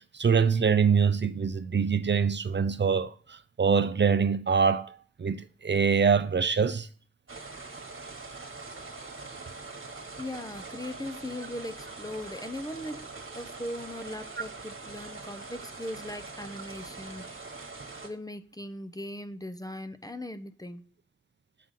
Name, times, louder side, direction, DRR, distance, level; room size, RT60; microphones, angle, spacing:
voice 1, 0.1-6.9, right 6 dB, 60° right, 0.5 m, -24 dB
sound 1, 7.3-18.1, right 3 dB, 75° right, 1.3 m, -43 dB
voice 2, 10.2-17.5 18.0-20.9, left 1 dB, 15° left, 0.6 m, -39 dB
7.4 x 4.0 x 5.6 m
wide cardioid pair, 45°, 21 cm